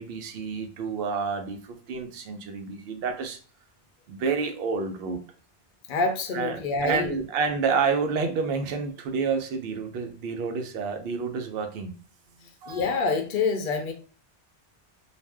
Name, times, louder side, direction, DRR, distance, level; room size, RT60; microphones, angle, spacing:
voice 1, 0.0-3.4 4.1-5.2 6.3-12.0 12.6-12.9, right 5 dB, 70° right, 5 dB, 0.8 m, -29 dB
voice 2, 5.9-7.2 12.4-13.9, left 4 dB, 60° left, 4 dB, 0.6 m, -27 dB
2.5 x 2.0 x 3.3 m, 0.39 s
omnidirectional pair, 1.1 m